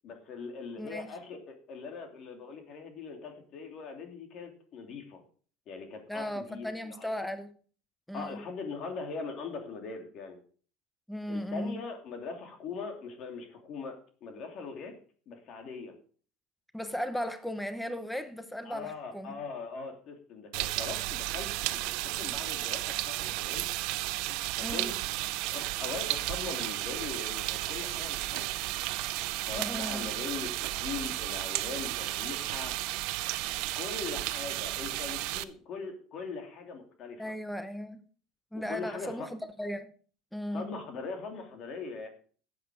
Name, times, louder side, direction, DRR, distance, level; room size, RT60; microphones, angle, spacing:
voice 1, 0.0-5.2 5.7-7.1 8.1-10.4 11.3-14.9 15.3-15.9 18.6-23.7 24.3-24.9 25.5-28.5 29.5-32.8 33.7-37.3 38.5-39.3 40.5-42.1, left 4 dB, 45° left, 3.0 m, -41 dB
voice 2, 6.1-7.5 8.1-8.4 11.1-11.8 16.7-19.4 24.6-24.9 29.6-30.1 37.2-38.0 38.5-39.9 40.3-40.7, equal, 5° left, 0.9 m, -36 dB
sound 1, 20.5-35.4, right 18 dB, 70° right, 0.7 m, -33 dB
12.0 x 8.2 x 5.0 m
cardioid pair, 135°, 0 cm